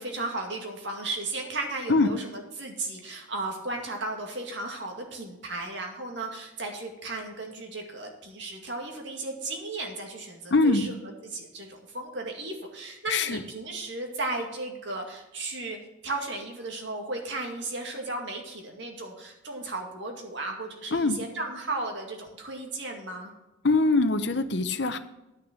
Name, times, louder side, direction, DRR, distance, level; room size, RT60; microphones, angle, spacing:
voice 1, 0.0-10.9 11.2-15.8 16.0-23.3, right 2 dB, 60° right, 2 dB, 2.2 m, -35 dB
voice 2, 10.5-10.9 13.1-13.4 20.9-21.2 23.6-25.0, left 3 dB, 60° left, 9 dB, 0.8 m, -23 dB
10.5 x 6.3 x 6.1 m, 0.98 s
head